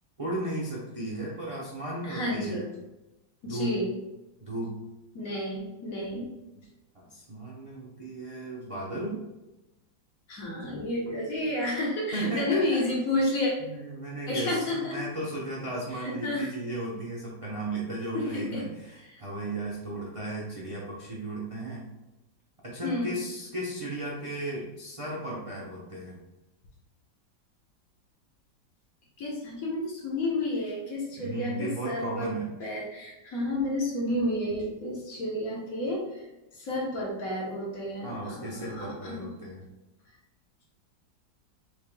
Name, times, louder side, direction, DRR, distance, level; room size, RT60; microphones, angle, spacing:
voice 1, 0.2-2.6 3.5-3.7 4.4-4.8 6.9-9.2 12.1-12.8 13.6-21.9 22.6-26.2 31.2-32.5 38.0-39.7, right 2 dB, 40° right, -5 dB, 0.5 m, -35 dB
voice 2, 2.0-2.7 3.4-3.9 5.1-6.3 10.3-13.5 14.3-15.0 16.0-16.5 18.1-18.6 19.1-19.2 22.8-23.1 29.2-32.3 32.6-36.2 36.5-39.5, left 1 dB, 55° left, -3 dB, 1.4 m, -31 dB
6.3 x 3.4 x 2.2 m, 0.99 s
omnidirectional pair, 2.0 m